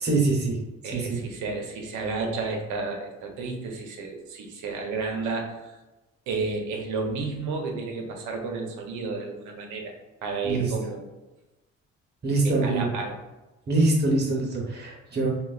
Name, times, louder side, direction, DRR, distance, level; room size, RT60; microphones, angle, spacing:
voice 1, 0.0-0.6 0.8-1.0 10.4-10.7 12.2-12.9 13.7-15.3, right 2 dB, 35° right, -1 dB, 0.9 m, -24 dB
voice 2, 0.8-5.5 6.3-9.9 10.2-11.1 12.4-13.2, right 4 dB, 90° right, 2 dB, 0.6 m, -31 dB
3.2 x 2.2 x 2.3 m, 1.1 s
cardioid pair, 90°, 30 cm